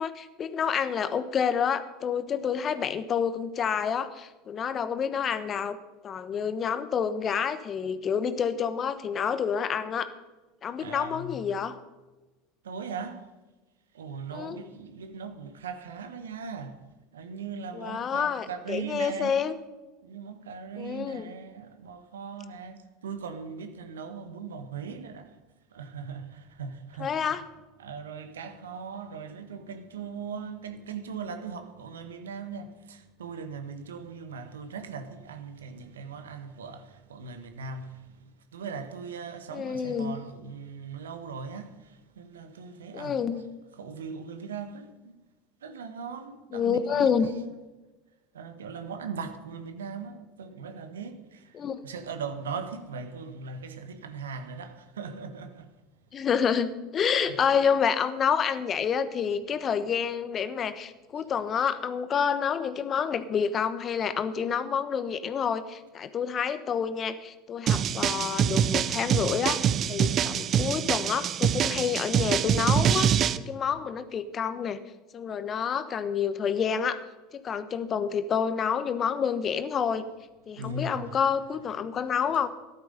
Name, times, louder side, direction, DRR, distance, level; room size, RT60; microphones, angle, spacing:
voice 1, 0.0-5.8 6.0-10.1 10.6-11.8 14.3-14.6 17.7-19.5 20.8-21.3 27.0-27.4 39.5-40.1 42.9-43.4 46.5-47.3 51.5-51.8 56.1-74.8 75.1-77.0 77.3-80.0 80.5-82.5, left 7 dB, 35° left, 1.1 m, -28 dB
voice 2, 10.8-11.5 12.6-13.3 13.9-16.8 17.1-19.5 20.0-25.4 25.7-27.4 27.8-43.4 43.7-45.1 45.6-47.5 48.3-55.7 57.2-57.4 80.5-81.2, right 5 dB, 80° right, 1.4 m, -39 dB
sound 1, 67.7-73.4, right 9 dB, 40° right, 0.7 m, -25 dB
14.0 x 11.5 x 5.4 m
hypercardioid pair, 75°, 0 cm